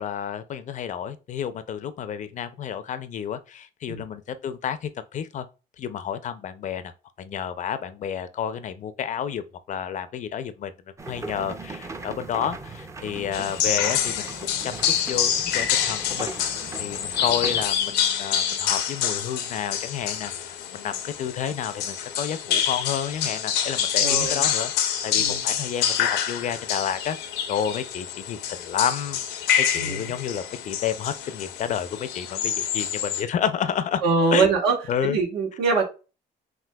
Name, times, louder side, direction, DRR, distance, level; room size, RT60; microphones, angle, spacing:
voice 1, 0.0-5.5 5.8-6.9 7.2-10.7 11.1-14.2 14.6-14.7 15.1-16.3 16.8-20.3 20.7-34.0 34.3-34.6 34.9-35.2, left 8 dB, 45° left, 0.5 m, -30 dB
sound 1, 11.0-17.7, right 3 dB, 15° right, 0.5 m, -39 dB
sound 2, 13.3-33.2, left 9 dB, 90° left, 0.6 m, -27 dB
voice 2, 24.0-24.5 25.2-25.4 29.8-30.1 34.0-34.7 35.0-35.8, right 4 dB, 75° right, 1.3 m, -23 dB
5.9 x 2.5 x 2.2 m
cardioid pair, 110°, 17 cm